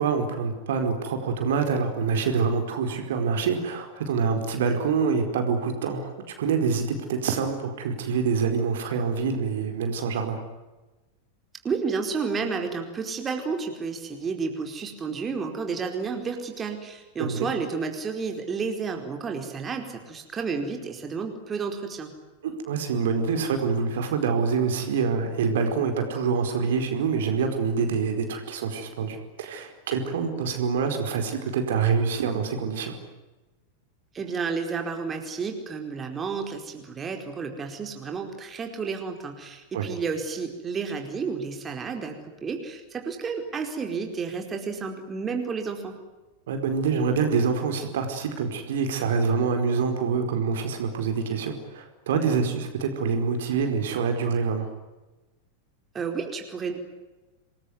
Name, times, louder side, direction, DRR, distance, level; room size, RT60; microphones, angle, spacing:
voice 1, 0.0-6.1 6.4-10.4 17.2-17.5 22.4-32.9 39.7-39.9 46.5-54.7, right 5 dB, 60° right, 6 dB, 4.8 m, -26 dB
voice 2, 11.6-22.1 34.1-46.0 55.9-56.8, right 5 dB, 20° right, 4 dB, 4.6 m, -31 dB
28.5 x 21.5 x 9.6 m, 1.1 s
figure-of-eight pair, 90°, 0 cm